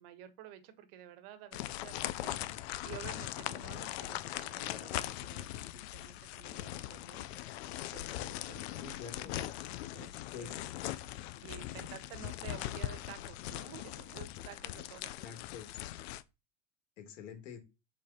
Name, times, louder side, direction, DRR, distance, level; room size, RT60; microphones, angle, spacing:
voice 1, 0.0-2.4 2.8-7.3 7.9-9.5 9.9-10.7 11.4-15.1, right 11 dB, 50° right, 10 dB, 1.5 m, -51 dB
sound 1, 1.5-16.2, left 14 dB, 60° left, 0.7 m, -40 dB
voice 2, 8.8-9.4 10.3-10.6 11.6-11.9 15.2-15.7 17.0-17.6, left 7 dB, 75° left, 5 dB, 2.8 m, -47 dB
6.5 x 5.4 x 4.4 m, 0.26 s
supercardioid pair, 165°, 37 cm